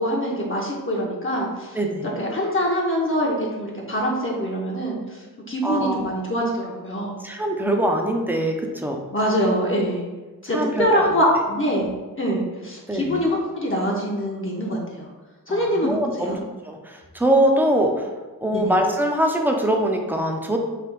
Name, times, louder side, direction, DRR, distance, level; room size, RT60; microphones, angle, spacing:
voice 1, 0.0-1.8 2.2-7.2 9.1-10.0 10.4-11.9 12.2-15.1 15.5-16.4 18.5-18.7, equal, 35° left, -3 dB, 0.7 m, -24 dB
voice 2, 5.6-6.2 7.2-9.0 10.5-11.1 12.9-13.1 15.5-16.4 16.6-18.1 18.4-20.6, right 1 dB, 5° right, 2 dB, 0.5 m, -23 dB
3.3 x 2.9 x 4.6 m, 1.2 s
wide cardioid pair, 95°, 34 cm